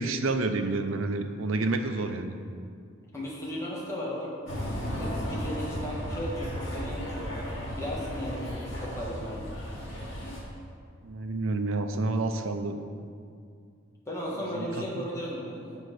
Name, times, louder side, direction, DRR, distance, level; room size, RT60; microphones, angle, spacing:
voice 1, 0.0-2.4 11.0-12.8 14.5-14.7 15.0-15.1, right 2 dB, 90° right, 7 dB, 0.6 m, -29 dB
voice 2, 3.1-4.3 5.0-7.4 7.7-9.4 14.1-15.8, equal, 15° left, -5 dB, 1.5 m, -35 dB
sound 1, 4.5-10.4, equal, 70° left, 2.1 m, -35 dB
7.9 x 5.3 x 6.6 m, 2.3 s
head